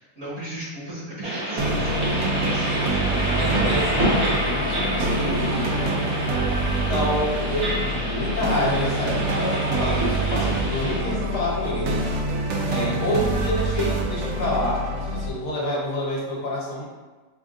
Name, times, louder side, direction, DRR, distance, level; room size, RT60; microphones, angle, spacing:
voice 1, 0.0-2.8, right 1 dB, 45° right, -9 dB, 1.8 m, -35 dB
sound 1, 1.2-11.0, equal, 20° right, 1.0 m, -28 dB
sound 2, 1.5-12.2, right 1 dB, 60° right, 0.9 m, -33 dB
sound 3, 1.6-15.3, right 2 dB, 85° right, 0.6 m, -26 dB
voice 2, 3.3-5.8 6.7-12.0 12.6-16.8, left 1 dB, 70° left, -6 dB, 1.6 m, -28 dB
5.1 x 2.5 x 2.5 m, 1.3 s
omnidirectional pair, 1.8 m